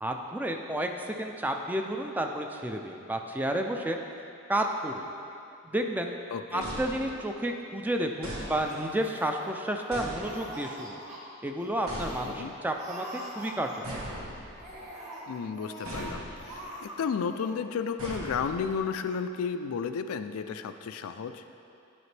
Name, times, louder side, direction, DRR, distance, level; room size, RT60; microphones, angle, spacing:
voice 1, 0.0-4.0 4.5-5.1 5.6-6.1 6.5-11.0 11.4-13.1 13.4-14.0, right 1 dB, 10° right, 3 dB, 0.3 m, -31 dB
voice 2, 6.3-6.6 12.2-12.5 15.3-21.4, left 6 dB, 85° left, 9 dB, 0.4 m, -33 dB
sound 1, 6.6-7.5 8.2-9.0 9.9-10.8 11.9-12.7 13.8-14.9 15.8-16.6 18.0-18.9, right 1 dB, 85° right, 1.4 m, -39 dB
Laughter, 8.5-9.9 10.2-11.2 11.6-11.7 11.9-12.3 12.7-14.1 14.5-16.1 16.3-17.0 17.2-17.5, equal, 35° right, 1.3 m, -44 dB
11.0 x 5.1 x 3.2 m, 2.7 s
head